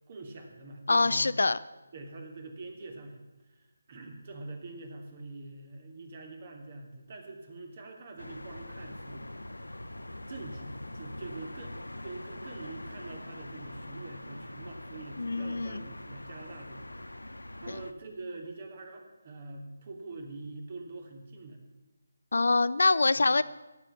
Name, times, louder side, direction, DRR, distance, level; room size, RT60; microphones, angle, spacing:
voice 1, 0.1-1.6 1.9-3.2 3.5-9.5 10.3-16.9 17.3-21.6 23.1-23.2, right 2 dB, 40° right, 4 dB, 3.0 m, -44 dB
voice 2, 0.9-1.6 15.2-15.8 22.3-23.4, left 3 dB, 65° left, 15 dB, 0.6 m, -24 dB
sound 1, 8.2-17.9, left 1 dB, 80° left, 1.0 m, -43 dB
16.5 x 8.2 x 8.7 m, 1.1 s
figure-of-eight pair, 155°, 0 cm